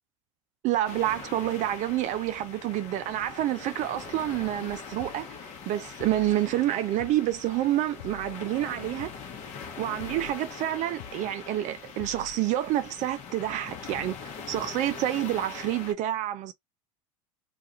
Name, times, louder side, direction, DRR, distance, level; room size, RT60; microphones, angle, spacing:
voice 1, 0.6-9.1 9.8-16.5, right 13 dB, 45° right, 0.4 m, -28 dB
sound 1, 0.8-15.9, left 6 dB, 40° left, 0.9 m, -42 dB
sound 2, 5.0-5.2 6.0-6.4 7.0-7.2 8.0-8.4 9.0-9.2 10.0-10.4 11.0-11.2 12.0-12.4, left 9 dB, 70° left, 0.4 m, -45 dB
2.4 x 2.2 x 2.9 m
hypercardioid pair, 80°, 17 cm